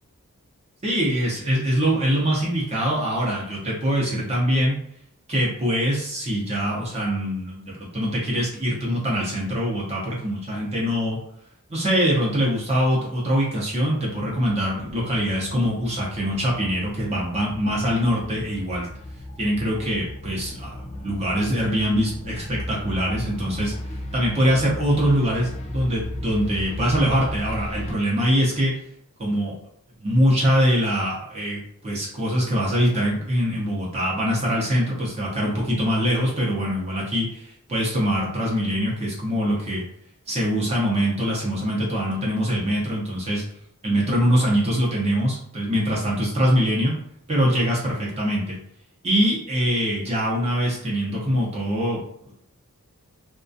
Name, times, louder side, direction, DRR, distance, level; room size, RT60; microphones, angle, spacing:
voice 1, 0.8-4.8 5.3-11.2 11.7-18.9 19.4-28.7 29.2-29.5 30.0-39.8 40.3-43.4 43.8-47.0 47.3-48.6 49.0-52.0, equal, 30° right, -4 dB, 0.6 m, -23 dB
sound 1, 14.7-28.0, left 1 dB, 30° left, 0.3 m, -36 dB
2.3 x 2.2 x 2.5 m, 0.72 s
head